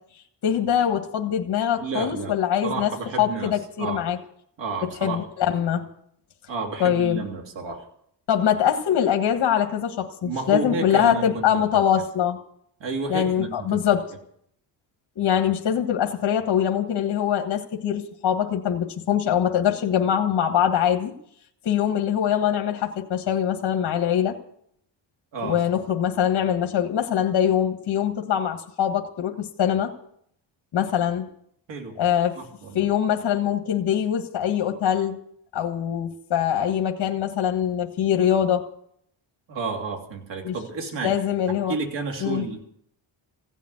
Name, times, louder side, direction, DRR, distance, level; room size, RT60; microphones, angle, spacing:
voice 1, 0.4-2.9 3.2-4.2 5.0-5.9 6.8-7.2 8.3-12.4 13.1-14.1 15.2-21.1 21.6-24.4 25.4-29.9 30.7-31.3 32.0-32.4 32.7-35.2 35.5-38.6 40.4-40.5 41.0-41.8 42.2-42.4, left 9 dB, 60° left, 4 dB, 1.6 m, -23 dB
voice 2, 1.8-2.4 2.6-4.0 4.6-5.2 6.5-7.9 10.2-11.4 12.8-13.8 25.3-25.6 31.7-31.9 32.3-32.8 39.5-41.1 41.7-42.7, right 4 dB, 70° right, 2 dB, 3.1 m, -31 dB
16.0 x 7.4 x 10.0 m, 0.68 s
cardioid pair, 135°, 46 cm